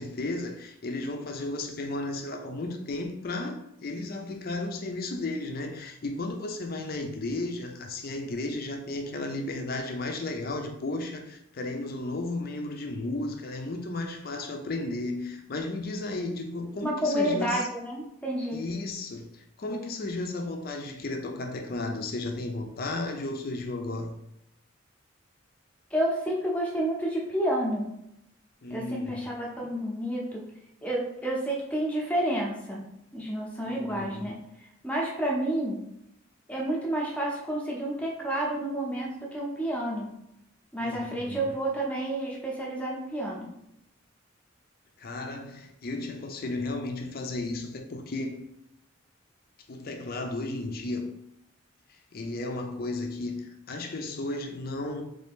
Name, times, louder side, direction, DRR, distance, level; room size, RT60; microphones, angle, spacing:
voice 1, 0.0-17.6 18.5-24.1 28.6-29.3 33.7-34.3 40.8-41.5 45.0-48.5 49.7-51.1 51.9-55.0, left 2 dB, 50° left, 0.5 m, -34 dB
voice 2, 16.8-18.6 25.9-27.9 28.7-30.4 30.8-32.8 33.1-34.4 34.8-35.8 36.5-40.1 40.7-43.5, right 1 dB, 5° left, 0.7 m, -30 dB
3.3 x 2.7 x 3.5 m
head